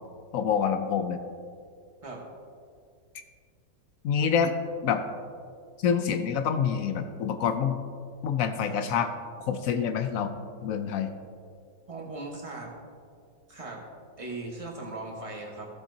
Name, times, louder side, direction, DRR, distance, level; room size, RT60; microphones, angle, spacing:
voice 1, 0.3-1.2 4.0-4.5 4.8-5.0 5.8-7.8 8.2-9.1 9.5-10.3 10.6-11.1, left 7 dB, 75° left, 8 dB, 0.7 m, -26 dB
voice 2, 11.9-12.7 13.5-13.8 14.2-15.7, right 2 dB, 20° right, -2 dB, 1.4 m, -38 dB
15.5 x 7.2 x 2.8 m, 2.2 s
omnidirectional pair, 2.0 m